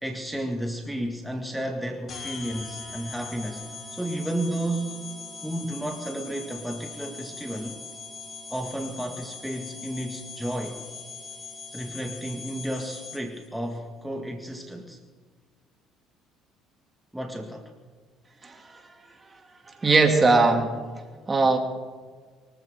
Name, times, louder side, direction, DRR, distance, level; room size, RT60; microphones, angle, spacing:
voice 1, 0.0-3.7 3.9-5.1 5.4-7.8 8.5-10.8 11.7-15.0 17.1-17.7, right 1 dB, 5° right, 3 dB, 2.0 m, -32 dB
sound 1, 2.1-13.5, left 4 dB, 45° left, 3.1 m, -41 dB
voice 2, 18.4-18.8 19.8-20.8 21.3-21.6, right 3 dB, 25° right, 4 dB, 2.8 m, -20 dB
24.0 x 14.5 x 3.8 m, 1.5 s
hypercardioid pair, 65°, 0 cm